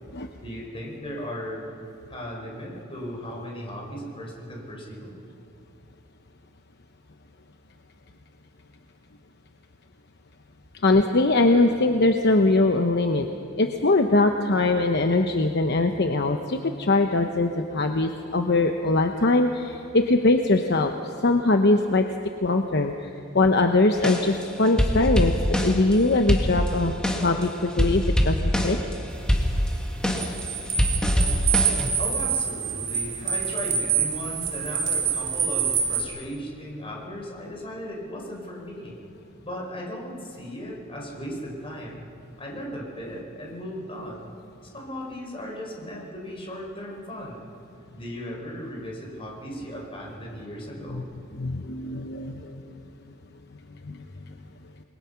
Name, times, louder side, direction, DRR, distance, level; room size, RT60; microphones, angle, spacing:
voice 1, 0.4-1.7 2.1-5.1 32.0-39.0 39.4-42.1 42.4-44.3 44.7-47.5 47.9-51.1, equal, 30° left, -2 dB, 5.4 m, -36 dB
voice 2, 10.8-13.3 13.6-22.1 22.4-28.8 50.9-51.0 51.3-52.6 53.8-54.3, left 2 dB, 55° left, 5 dB, 0.9 m, -22 dB
sound 1, 24.0-25.9 26.3-27.4 27.7-28.9 29.3-31.9, equal, 5° left, 2.2 m, -24 dB
sound 2, 29.1-36.0, right 7 dB, 65° right, 3.4 m, -26 dB
28.0 x 21.5 x 5.9 m, 2.7 s
head